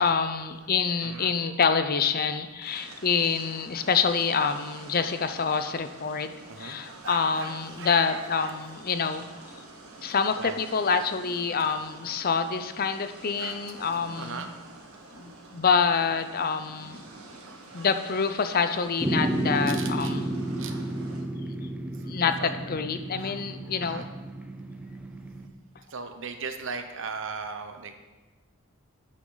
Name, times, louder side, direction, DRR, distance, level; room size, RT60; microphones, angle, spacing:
voice 1, 0.0-6.3 6.6-9.3 10.0-14.5 15.1-17.0 17.7-20.3 22.0-24.1, left 5 dB, 45° left, 10 dB, 0.6 m, -26 dB
voice 2, 0.5-1.4 2.0-2.4 2.7-4.0 4.9-5.6 6.5-8.6 10.4-10.6 11.6-11.7 12.0-12.4 12.8-13.0 13.4-14.5 15.6-15.8 17.4-17.9 19.5-20.1 20.6-20.9 21.9-22.0 22.4-22.5 23.2-23.4 23.8-24.1 25.9-28.0, right 5 dB, 60° right, 7 dB, 1.0 m, -41 dB
sound 1, 2.6-21.2, right 2 dB, 85° right, 2.0 m, -48 dB
sound 2, 19.0-25.5, right 1 dB, 5° right, 0.7 m, -32 dB
11.5 x 9.0 x 4.0 m, 1.2 s
head